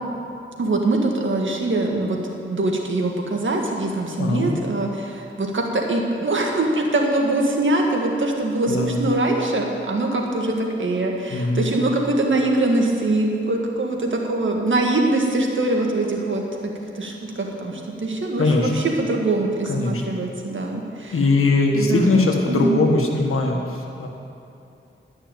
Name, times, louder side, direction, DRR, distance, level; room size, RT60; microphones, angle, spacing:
voice 1, 0.6-2.2 2.4-16.4 16.9-21.1 21.7-22.1 22.5-22.8, right 2 dB, 65° right, 1 dB, 1.8 m, -23 dB
voice 2, 4.2-4.6 8.7-9.0 11.3-11.7 18.4-18.7 19.7-20.0 21.1-24.1, left 3 dB, 85° left, 2 dB, 1.5 m, -20 dB
11.5 x 6.3 x 9.1 m, 2.7 s
cardioid pair, 60°, 21 cm